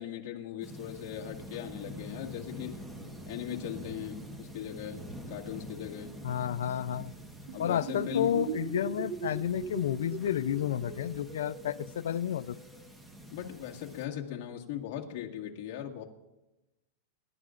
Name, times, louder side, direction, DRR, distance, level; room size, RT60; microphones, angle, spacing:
voice 1, 0.0-2.8 3.3-6.1 7.5-8.4 8.8-8.9 11.7-11.9 13.3-16.0, left 11 dB, 50° left, -1 dB, 2.0 m, -39 dB
sound 1, 0.6-14.1, equal, 5° right, 1.3 m, -46 dB
voice 2, 6.2-7.1 7.6-12.6, left 10 dB, 85° left, 16 dB, 0.5 m, -31 dB
sound 2, 7.5-12.9, right 6 dB, 60° right, 2.3 m, -40 dB
27.5 x 12.0 x 2.5 m, 0.98 s
supercardioid pair, 160°, 0 cm